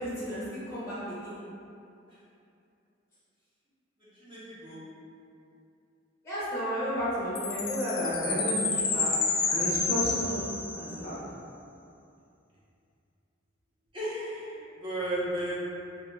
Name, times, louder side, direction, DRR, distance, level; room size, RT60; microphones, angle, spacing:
voice 1, 0.0-1.4 6.2-9.1 9.5-11.1, equal, 15° left, -10 dB, 0.6 m, -32 dB
voice 2, 4.0-4.8 13.9-15.5, right 1 dB, 25° right, -10 dB, 0.7 m, -35 dB
Chime, 7.4-11.1, left 4 dB, 75° left, 0.4 m, -29 dB
2.3 x 2.1 x 3.0 m, 2.6 s
head